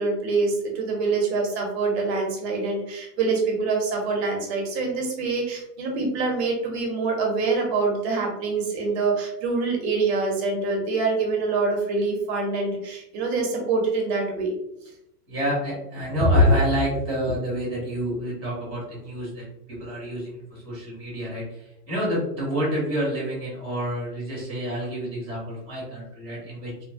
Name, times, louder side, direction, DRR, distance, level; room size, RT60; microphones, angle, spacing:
voice 1, 0.0-14.5, right 4 dB, 40° right, 1 dB, 0.8 m, -25 dB
voice 2, 15.3-26.8, equal, ahead, -20 dB, 0.3 m, -27 dB
2.9 x 2.2 x 2.6 m, 0.82 s
hypercardioid pair, 140°, 48 cm